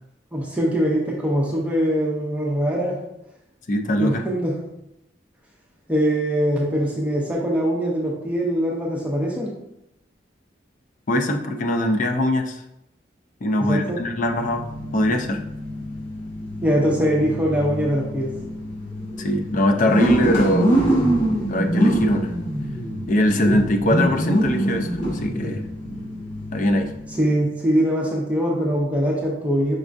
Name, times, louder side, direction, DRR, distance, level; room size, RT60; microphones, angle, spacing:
voice 1, 0.3-3.0 4.0-4.6 5.9-9.5 13.7-14.0 16.6-18.3 27.2-29.8, equal, 5° right, -3 dB, 0.7 m, -22 dB
voice 2, 3.7-4.2 11.1-12.6 13.4-14.7 14.9-15.4 19.2-20.8 21.5-22.3 23.1-25.6 26.5-26.9, left 1 dB, 45° left, 5 dB, 0.4 m, -22 dB
sound 1, 14.0-27.3, right 1 dB, 90° left, 1.3 m, -25 dB
5.2 x 3.5 x 2.5 m, 0.84 s
head